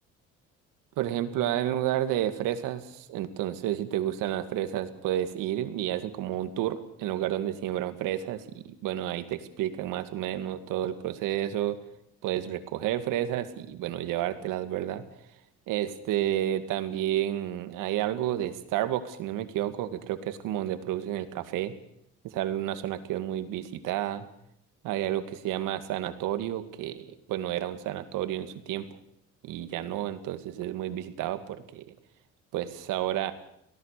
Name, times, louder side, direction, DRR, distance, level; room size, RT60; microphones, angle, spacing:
voice 1, 1.0-11.8 12.2-15.0 15.7-21.7 22.2-24.3 24.8-28.9 29.4-31.9 32.5-33.3, right 12 dB, 75° right, 9 dB, 2.2 m, -31 dB
24.5 x 17.5 x 6.7 m, 0.74 s
cardioid pair, 150°, 32 cm